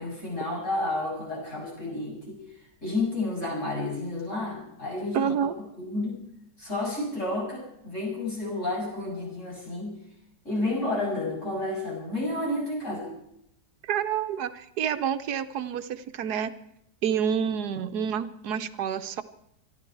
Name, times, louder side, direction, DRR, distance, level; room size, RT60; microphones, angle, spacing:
voice 1, 0.0-2.4 2.8-5.3 5.8-6.2 6.6-10.0 10.4-13.1, left 2 dB, 45° left, -3 dB, 7.6 m, -31 dB
voice 2, 5.1-5.5 13.8-16.5 17.0-19.2, right 8 dB, 75° right, 10 dB, 1.3 m, -28 dB
25.0 x 12.0 x 4.6 m, 0.75 s
omnidirectional pair, 1.7 m